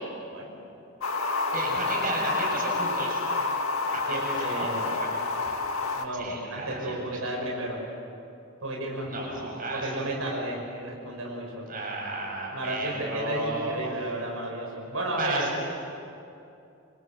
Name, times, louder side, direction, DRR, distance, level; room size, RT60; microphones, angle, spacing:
sound 1, 1.0-6.0, left 3 dB, 85° left, 1.9 m, -29 dB
voice 1, 1.5-3.2 3.9-5.1 6.1-7.2 9.1-9.9 11.7-13.7 15.2-15.7, right 2 dB, 40° right, -2 dB, 6.9 m, -33 dB
voice 2, 4.1-4.9 5.9-7.8 8.6-11.7 12.5-15.5, right 1 dB, 80° right, -1 dB, 6.0 m, -33 dB
27.0 x 26.0 x 7.8 m, 2.7 s
head